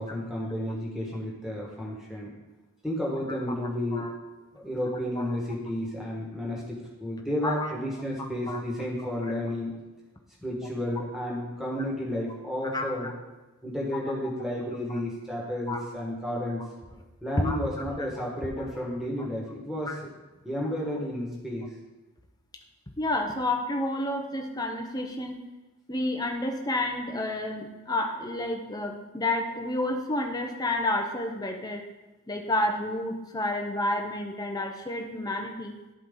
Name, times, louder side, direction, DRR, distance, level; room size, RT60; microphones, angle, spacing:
voice 1, 0.0-2.3 2.8-4.1 4.6-9.8 10.4-13.1 13.6-16.6 17.2-20.0 20.4-21.7, left 1 dB, ahead, -4 dB, 1.5 m, -32 dB
voice 2, 12.7-13.1 14.9-15.0 15.7-15.8 17.4-17.6 18.6-18.7 19.9-20.0 23.0-25.4 25.9-31.8 32.3-35.7, left 1 dB, 15° left, 3 dB, 0.7 m, -30 dB
12.0 x 4.6 x 3.7 m, 1.1 s
head